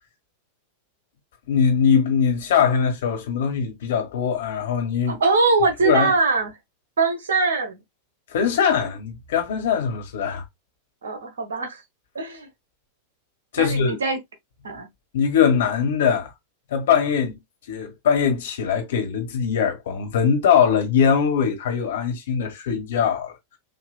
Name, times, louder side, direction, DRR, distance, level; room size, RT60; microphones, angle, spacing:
voice 1, 1.5-5.2 5.8-6.1 8.3-10.4 13.5-14.0 15.1-16.3 16.7-17.4 17.7-23.3, left 7 dB, 60° left, 1.3 m, -21 dB
voice 2, 5.1-6.5 7.0-7.8 11.0-11.8 12.1-12.5 13.6-14.2 14.6-14.9, right 4 dB, 65° right, 1.1 m, -22 dB
5.3 x 2.7 x 2.3 m
figure-of-eight pair, 90°, 0 cm